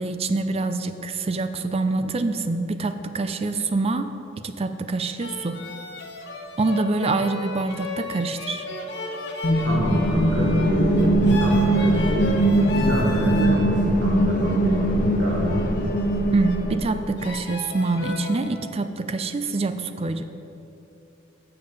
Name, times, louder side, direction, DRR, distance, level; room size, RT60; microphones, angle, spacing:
voice 1, 0.0-4.1 4.4-5.6 6.6-8.6 16.3-20.2, right 3 dB, 35° right, 10 dB, 0.4 m, -25 dB
sound 1, 5.2-13.6 14.1-16.7 17.2-18.4, left 2 dB, 65° left, 1.1 m, -34 dB
sound 2, 9.4-17.2, right 1 dB, 45° left, 0.7 m, -21 dB
voice 2, 9.6-12.4 12.7-15.7, right 1 dB, 80° right, -4 dB, 1.3 m, -26 dB
7.3 x 6.9 x 6.5 m, 2.8 s
head